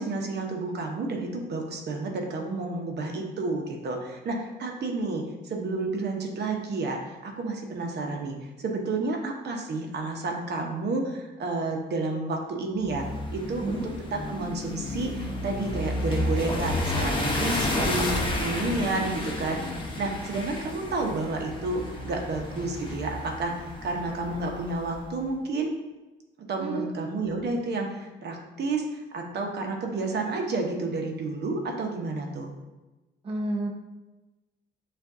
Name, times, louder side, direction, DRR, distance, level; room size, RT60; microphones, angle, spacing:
voice 1, 0.0-13.0 13.3-13.8 14.1-25.7 26.4-32.5, right 3 dB, 55° right, 2 dB, 0.9 m, -30 dB
sound 1, 12.9-25.0, left 1 dB, 25° left, 0.9 m, -31 dB
voice 2, 13.4-13.9 26.6-27.1 33.2-33.7, right 2 dB, 30° right, 1 dB, 0.5 m, -31 dB
7.1 x 2.6 x 2.6 m, 1.1 s
cardioid pair, 90°, 20 cm